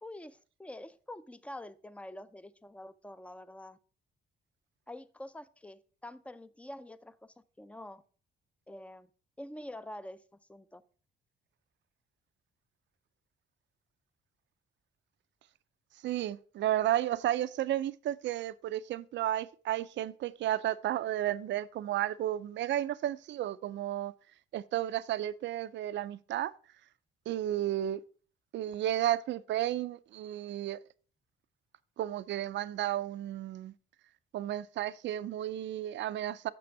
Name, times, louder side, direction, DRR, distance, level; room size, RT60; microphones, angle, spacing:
voice 1, 0.0-3.8 4.9-8.0 8.7-9.1 9.4-10.2 10.5-10.8, left 1 dB, 5° left, 0.5 m, -46 dB
voice 2, 16.0-24.1 24.5-26.5 27.3-28.0 28.5-30.8 32.0-33.7 34.3-36.5, right 12 dB, 65° right, 0.5 m, -33 dB
6.8 x 6.1 x 4.6 m
cardioid pair, 90°, 20 cm